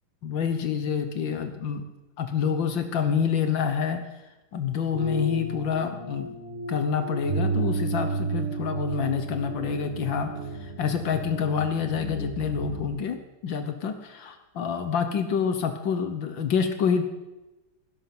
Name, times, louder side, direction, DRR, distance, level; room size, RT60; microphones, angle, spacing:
voice 1, 0.2-1.9 2.2-4.0 4.5-6.3 6.7-17.0, left 7 dB, 75° left, 8 dB, 1.8 m, -27 dB
sound 1, 4.9-12.9, right 3 dB, 40° right, 7.2 m, -32 dB
18.5 x 11.5 x 6.0 m, 1.1 s
omnidirectional pair, 2.1 m